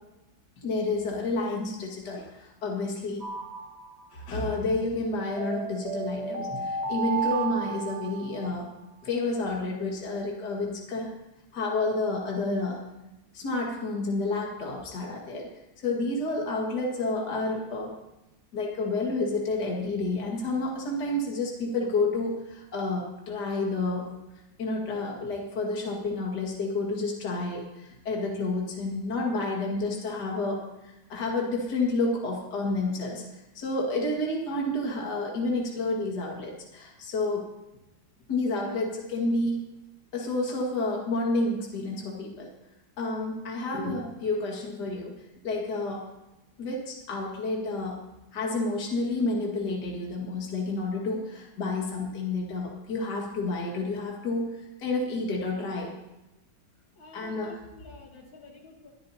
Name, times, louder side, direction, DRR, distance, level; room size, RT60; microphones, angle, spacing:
voice 1, 0.6-3.3 4.1-8.7 9.0-11.1 11.5-12.8 13.3-15.5 15.8-17.9 18.5-24.1 24.6-37.5 38.3-39.7 40.1-42.5 43.0-45.1 45.4-46.0 46.6-48.0 48.3-55.9 57.1-57.6, left 2 dB, 60° left, -2 dB, 2.6 m, -30 dB
sound 1, 3.2-4.3 5.4-8.6, right 5 dB, 35° right, 1.5 m, -33 dB
voice 2, 57.0-58.9, left 2 dB, 85° left, -2 dB, 3.4 m, -49 dB
22.0 x 12.5 x 2.9 m, 0.96 s
omnidirectional pair, 2.1 m